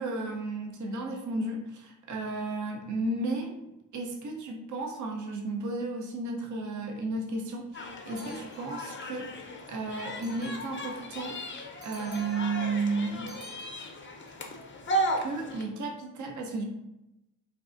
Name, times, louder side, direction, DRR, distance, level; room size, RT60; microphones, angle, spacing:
voice 1, 0.0-11.4 11.8-13.3 15.2-16.7, right 3 dB, 40° right, 2 dB, 0.6 m, -33 dB
sound 1, 7.7-15.6, right 1 dB, 25° left, 0.5 m, -35 dB
sound 2, 8.2-8.9 10.1-10.8 11.8-12.6 13.3-14.3, right 3 dB, 90° right, 0.7 m, -52 dB
3.3 x 2.4 x 2.4 m, 0.90 s
cardioid pair, 50°, 45 cm